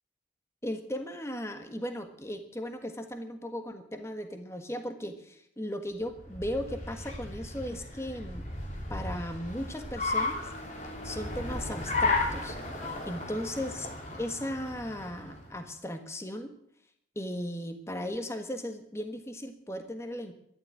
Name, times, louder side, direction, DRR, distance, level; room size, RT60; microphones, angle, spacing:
voice 1, 0.6-8.4 8.9-10.5 11.0-12.6 13.1-13.9 14.2-16.5 17.1-20.3, equal, 15° left, 6 dB, 1.5 m, -37 dB
Car, 6.0-15.6, left 2 dB, 40° left, 2.9 m, -34 dB
13.0 x 11.5 x 8.9 m, 0.71 s
head